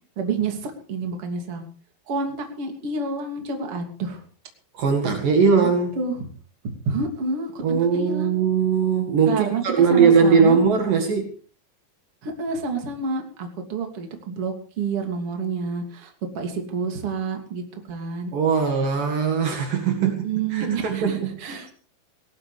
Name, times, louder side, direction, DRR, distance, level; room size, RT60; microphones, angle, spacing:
voice 1, 0.2-1.6 2.1-4.2 5.6-5.7 6.0-6.3 6.9-8.3 9.3-9.6 9.9-10.6 12.2-17.6 17.9-18.3 20.0-21.7, right 4 dB, 40° right, 3 dB, 3.5 m, -28 dB
voice 2, 4.7-5.9 7.6-11.3 18.3-20.2 20.5-21.7, right 5 dB, 65° right, 3 dB, 3.5 m, -20 dB
19.5 x 18.0 x 3.4 m, 0.40 s
omnidirectional pair, 4.4 m